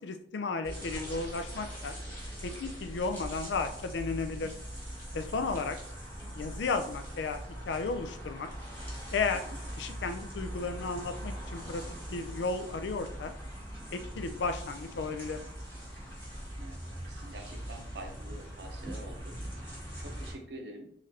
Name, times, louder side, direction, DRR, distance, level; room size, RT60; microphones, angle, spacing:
voice 1, 0.0-1.9 2.4-4.5 5.1-5.8 6.3-8.5 9.1-9.4 9.8-11.8 12.1-13.3 13.9-15.4, left 4 dB, 80° left, 8 dB, 0.4 m, -34 dB
sound 1, 0.6-20.3, equal, 10° left, 1.1 m, -41 dB
voice 2, 16.5-20.9, right 1 dB, 70° right, 3 dB, 0.7 m, -47 dB
3.7 x 3.2 x 2.8 m, 0.69 s
head